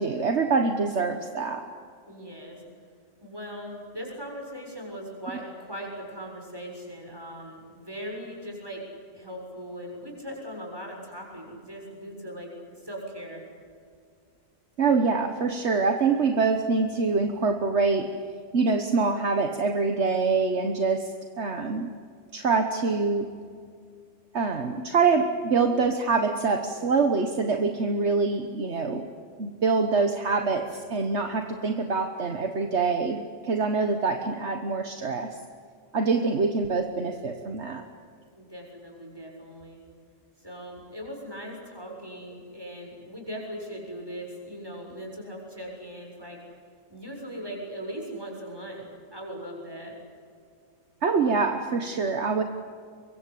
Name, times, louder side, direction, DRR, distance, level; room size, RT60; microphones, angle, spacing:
voice 1, 0.0-1.7 14.8-18.1 18.5-21.9 22.3-23.3 24.3-29.1 29.4-35.4 35.9-37.8 41.9-42.0 51.0-52.4, right 4 dB, 65° right, 6 dB, 1.6 m, -25 dB
voice 2, 2.1-2.6 3.2-8.8 9.1-13.4 38.4-39.8 40.4-46.4 46.9-48.9 49.1-49.9, equal, 20° right, 0 dB, 7.1 m, -39 dB
24.0 x 23.5 x 8.5 m, 2.2 s
omnidirectional pair, 1.3 m